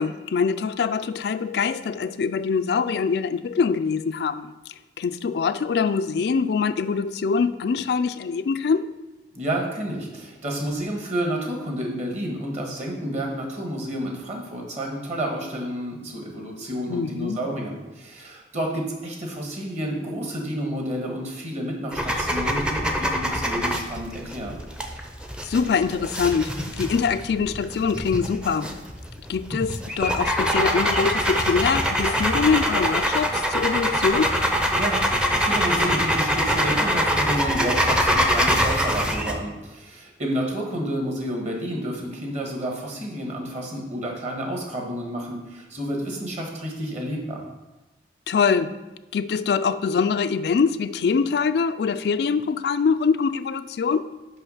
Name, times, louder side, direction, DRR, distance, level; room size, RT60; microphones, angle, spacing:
voice 1, 0.0-4.5 5.0-8.9 16.9-17.4 25.4-26.5 26.8-28.7 29.3-34.3 48.3-48.7 49.1-54.1, left 5 dB, 65° left, 13 dB, 0.3 m, -23 dB
voice 2, 9.3-24.6 34.7-47.5, right 1 dB, 40° right, 0 dB, 1.5 m, -30 dB
sound 1, 21.9-39.4, equal, 5° right, 0.6 m, -24 dB
5.7 x 5.7 x 5.4 m, 1.1 s
head